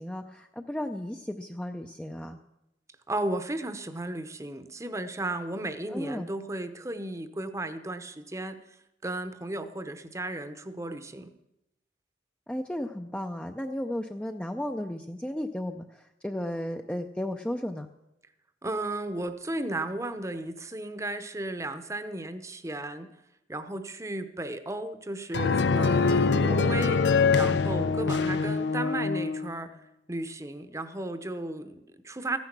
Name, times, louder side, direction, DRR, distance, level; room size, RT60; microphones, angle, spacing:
voice 1, 0.0-2.4 5.9-6.3 12.5-17.9, left 1 dB, 5° left, 4 dB, 0.4 m, -34 dB
voice 2, 3.1-8.6 9.0-11.3 18.6-23.1 23.5-27.0 27.3-29.7 30.1-32.4, right 2 dB, 15° right, 10 dB, 0.8 m, -34 dB
sound 1, 25.3-29.5, left 4 dB, 85° left, 0.6 m, -24 dB
14.5 x 10.5 x 6.0 m, 0.88 s
head